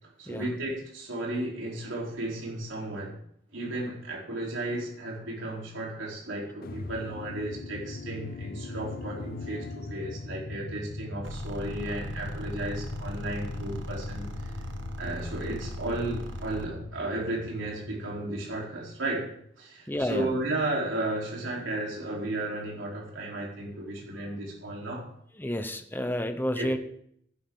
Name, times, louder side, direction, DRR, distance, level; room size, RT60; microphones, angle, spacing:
voice 1, 0.0-3.2 3.5-14.5 15.0-19.3 19.6-25.1 26.6-26.8, right 2 dB, 90° right, -3 dB, 3.8 m, -34 dB
sound 1, 6.6-18.8, left 2 dB, 50° left, 0.6 m, -39 dB
sound 2, 11.2-16.8, right 1 dB, 65° right, 1.5 m, -41 dB
voice 2, 19.9-20.3 25.4-26.8, equal, 10° left, 8 dB, 0.9 m, -30 dB
14.5 x 11.5 x 3.8 m, 0.67 s
head